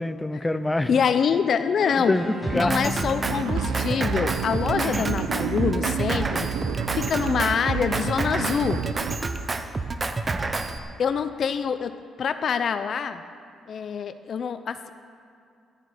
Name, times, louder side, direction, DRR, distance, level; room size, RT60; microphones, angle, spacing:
voice 1, 0.0-0.9 2.1-2.9 4.8-5.1, left 2 dB, 10° left, 10 dB, 0.7 m, -26 dB
voice 2, 0.9-2.2 2.5-6.5 6.9-8.8 11.0-13.2 13.7-14.9, left 7 dB, 55° left, 11 dB, 0.5 m, -25 dB
sound 1, 1.8-7.7, right 2 dB, 15° right, 3.7 m, -36 dB
Drum kit, 2.4-10.8, right 3 dB, 30° right, 0.8 m, -29 dB
sound 2, 3.2-9.2, right 11 dB, 85° right, 0.3 m, -31 dB
14.0 x 11.5 x 5.0 m, 2.4 s
cardioid pair, 90°, 0 cm